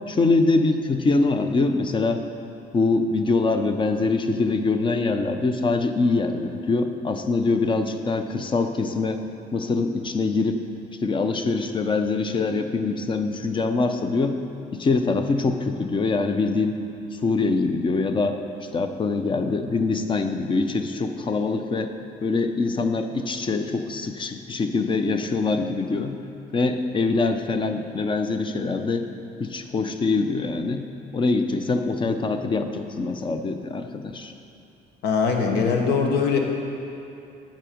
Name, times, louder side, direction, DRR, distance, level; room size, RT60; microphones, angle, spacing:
voice 1, 0.1-2.2 2.7-9.2 9.5-10.6 11.0-14.4 14.7-16.8 17.2-18.4 18.7-21.9 22.2-26.2 26.5-29.1 29.4-30.8 31.1-34.3, left 3 dB, 30° left, 7 dB, 0.6 m, -24 dB
voice 2, 35.0-36.4, left 5 dB, 80° left, 3 dB, 1.1 m, -21 dB
9.0 x 7.3 x 5.1 m, 2.7 s
cardioid pair, 110°, 17 cm